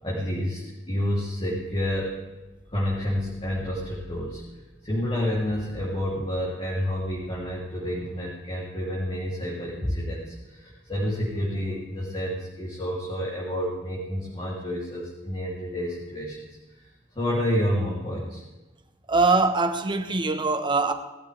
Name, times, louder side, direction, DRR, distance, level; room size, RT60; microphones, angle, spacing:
voice 1, 0.0-0.6 0.9-2.2 2.7-4.4 4.8-16.4 17.1-18.4, equal, 30° left, 3.2 m, -29 dB
voice 2, 19.1-20.9, right 3 dB, 25° right, 1.1 m, -22 dB
19.5 x 13.5 x 3.5 m
head